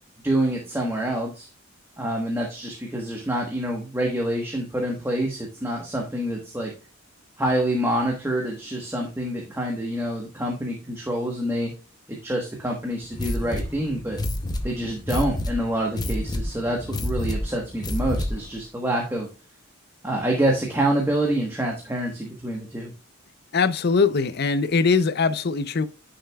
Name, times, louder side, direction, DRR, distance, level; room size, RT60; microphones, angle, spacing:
voice 1, 0.2-1.5 2.0-6.7 7.4-11.7 12.1-14.2 14.6-19.3 20.0-22.9, right 1 dB, 10° right, 1.2 m, -26 dB
sound 1, 13.1-18.5, left 1 dB, 20° left, 0.7 m, -29 dB
voice 2, 23.5-25.9, left 4 dB, 50° left, 0.5 m, -21 dB
9.9 x 5.8 x 2.3 m
head